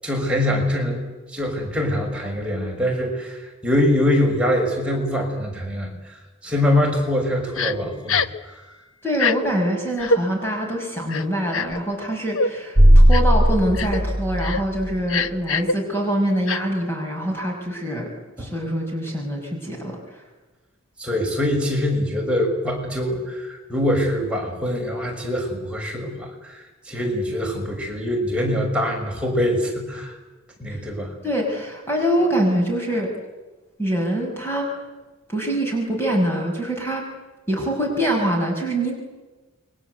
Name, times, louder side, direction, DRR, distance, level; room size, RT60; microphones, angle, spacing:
voice 1, 0.0-8.6 18.4-18.5 21.0-30.2 30.6-31.1, left 1 dB, 5° right, -1 dB, 6.4 m, -24 dB
Crying sobbing, 7.6-7.7 8.1-8.4 9.1-9.3 10.0-10.2 11.1-11.8 12.3-12.5 13.1-13.4 13.7-14.0 14.4-14.6 15.1-15.7 16.5-16.6, left 4 dB, 85° left, 1.1 m, -23 dB
voice 2, 9.0-18.1 18.4-20.0 31.2-33.1 33.8-34.8 35.3-37.1 37.5-39.0, equal, 10° left, 0 dB, 5.8 m, -24 dB
sound 1, 12.8-15.2, equal, 30° right, 3.3 m, -16 dB
29.0 x 23.5 x 8.1 m, 1.2 s
head